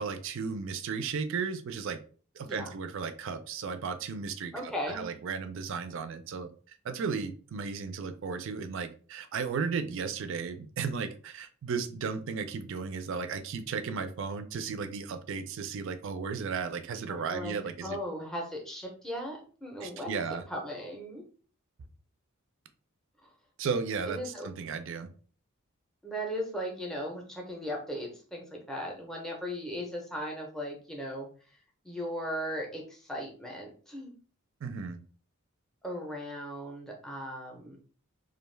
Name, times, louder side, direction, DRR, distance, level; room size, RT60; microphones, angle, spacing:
voice 1, 0.0-2.0 2.4-18.0 19.8-20.4 23.6-25.1 34.6-35.0, right 5 dB, 60° right, 9 dB, 0.4 m, -35 dB
voice 2, 4.5-5.1 17.1-17.5 17.8-21.2 23.2-23.3 24.1-24.5 26.0-31.3 31.8-34.1 35.8-37.8, equal, ahead, -1 dB, 0.5 m, -37 dB
2.4 x 2.2 x 3.2 m, 0.40 s
head